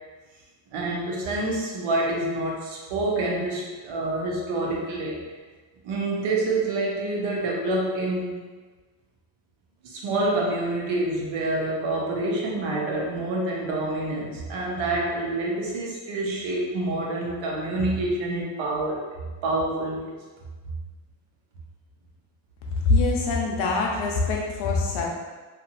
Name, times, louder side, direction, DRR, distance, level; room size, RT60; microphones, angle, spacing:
voice 1, 0.7-5.1 5.8-8.4 9.8-19.0 19.4-20.1, right 2 dB, 80° right, -2 dB, 0.9 m, -27 dB
voice 2, 22.8-25.1, left 3 dB, 85° left, -1 dB, 0.8 m, -23 dB
2.8 x 2.5 x 2.5 m, 1.3 s
cardioid pair, 165°, 45 cm